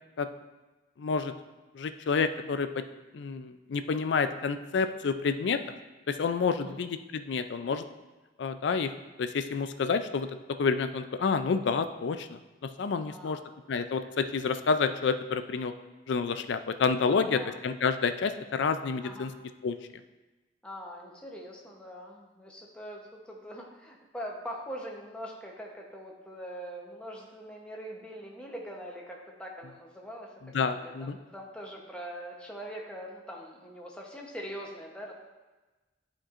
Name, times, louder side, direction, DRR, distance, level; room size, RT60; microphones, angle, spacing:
voice 1, 1.0-1.3 1.7-2.8 3.1-5.6 6.1-7.9 8.4-8.9 9.2-10.3 10.6-13.4 13.7-15.7 16.1-19.3 19.6-19.8 30.4-31.2, left 5 dB, 70° left, 10 dB, 0.4 m, -29 dB
voice 2, 6.5-6.8 13.0-13.5 17.1-17.5 19.0-19.3 20.6-30.3 30.6-35.1, equal, 5° left, -1 dB, 0.9 m, -42 dB
11.0 x 4.4 x 2.5 m, 1.2 s
head